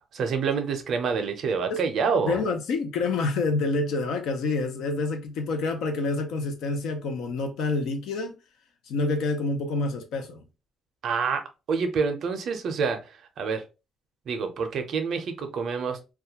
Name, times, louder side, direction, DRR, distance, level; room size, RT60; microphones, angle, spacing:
voice 1, 0.1-2.4 11.0-11.4 11.7-13.0 13.4-13.6 14.3-16.1, right 5 dB, 50° right, 0.5 m, -27 dB
voice 2, 2.2-8.4 8.9-10.4, left 3 dB, 85° left, 0.6 m, -27 dB
2.3 x 2.2 x 2.8 m
cardioid pair, 180°, 0 cm